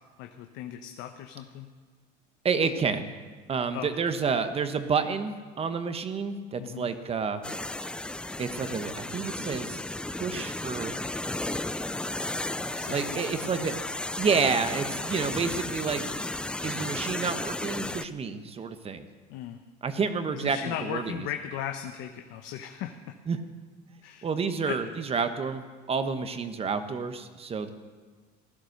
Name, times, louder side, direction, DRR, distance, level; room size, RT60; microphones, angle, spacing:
voice 1, 0.2-1.7 3.7-3.9 6.6-6.9 12.7-13.4 19.3-19.6 20.3-23.2 24.0-24.3 24.7-24.8, left 10 dB, 65° left, 5 dB, 1.0 m, -37 dB
voice 2, 2.4-3.1 3.5-7.4 8.4-9.8 10.1-10.9 12.6-13.8 14.2-16.0 16.6-19.1 19.8-21.3 23.3-23.4 24.2-27.7, right 5 dB, 30° right, 9 dB, 1.2 m, -29 dB
sound 1, 7.4-18.1, left 2 dB, 5° left, 0.4 m, -34 dB
15.5 x 11.5 x 6.6 m, 1.5 s
supercardioid pair, 105°, 21 cm